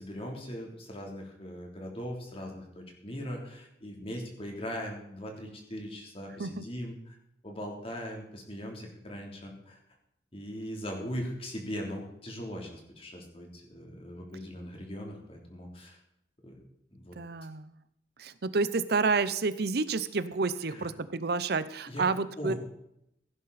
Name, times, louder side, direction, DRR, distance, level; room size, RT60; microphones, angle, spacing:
voice 1, 0.0-7.2 7.4-9.8 10.3-16.0 16.4-16.6 16.9-17.1 20.7-20.9 21.9-22.1 22.4-22.6, equal, 35° left, 1 dB, 3.3 m, -40 dB
voice 2, 17.2-17.8 18.2-22.5, right 4 dB, 65° right, 14 dB, 0.7 m, -29 dB
16.5 x 10.5 x 4.2 m, 0.79 s
head